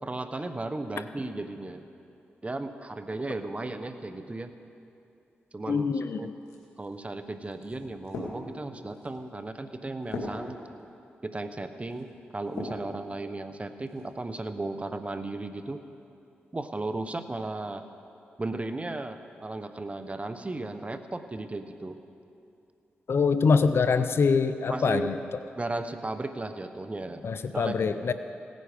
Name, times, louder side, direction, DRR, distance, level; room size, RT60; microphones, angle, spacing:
voice 1, 0.0-1.9 2.4-4.5 5.5-6.3 6.8-10.6 11.2-15.8 16.5-17.8 18.4-22.0 24.7-25.1 25.6-27.3 27.5-27.7, right 2 dB, 30° right, 9 dB, 1.0 m, -35 dB
voice 2, 5.7-6.3 23.1-25.2 27.2-28.1, left 5 dB, 65° left, 11 dB, 0.6 m, -24 dB
sound 1, 6.4-12.9 13.4-14.1, left 2 dB, 90° left, 1.9 m, -42 dB
17.0 x 9.4 x 5.1 m, 2.6 s
supercardioid pair, 45°, 4 cm